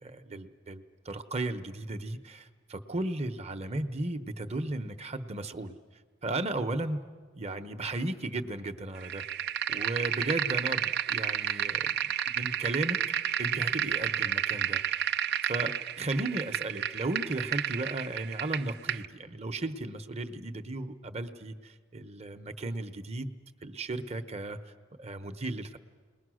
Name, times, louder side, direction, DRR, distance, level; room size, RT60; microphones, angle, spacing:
voice 1, 0.0-5.8 6.2-7.0 7.3-9.2 9.7-13.0 13.4-15.1 15.4-23.4 23.6-24.6 25.0-25.8, right 2 dB, 35° right, 9 dB, 1.0 m, -35 dB
sound 1, 9.0-19.0, right 9 dB, 60° right, 0.7 m, -31 dB
29.0 x 21.0 x 6.4 m, 1.5 s
head